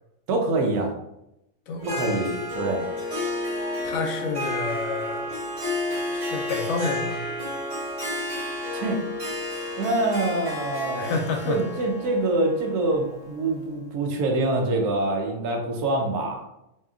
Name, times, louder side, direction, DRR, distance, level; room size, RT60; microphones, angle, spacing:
voice 1, 0.3-0.9 1.8-2.9 8.7-9.0 9.8-11.2 11.4-16.4, right 2 dB, 75° right, 2 dB, 1.1 m, -25 dB
voice 2, 1.7-2.4 3.8-5.3 5.9-7.2 10.9-11.6, left 4 dB, 70° left, 2 dB, 0.9 m, -30 dB
Harp, 1.8-13.6, left 1 dB, 40° right, 1.2 m, -31 dB
2.8 x 2.7 x 2.4 m, 0.86 s
omnidirectional pair, 1.6 m